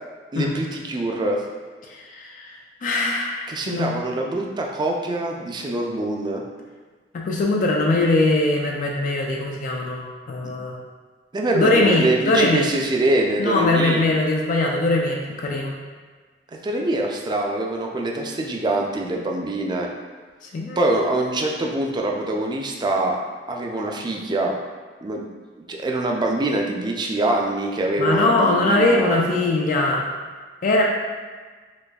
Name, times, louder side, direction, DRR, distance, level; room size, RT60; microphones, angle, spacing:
voice 1, 0.3-1.4 3.5-6.4 11.3-14.0 16.5-19.9 20.8-23.2 23.5-24.6 25.0-25.2 25.6-29.2, right 2 dB, 25° right, 0 dB, 0.3 m, -24 dB
voice 2, 1.9-4.0 7.1-10.8 11.5-12.7 13.4-15.8 20.5-20.8 28.0-30.0 30.6-30.8, left 2 dB, 45° left, -1 dB, 0.3 m, -21 dB
4.0 x 2.9 x 2.3 m, 1.5 s
head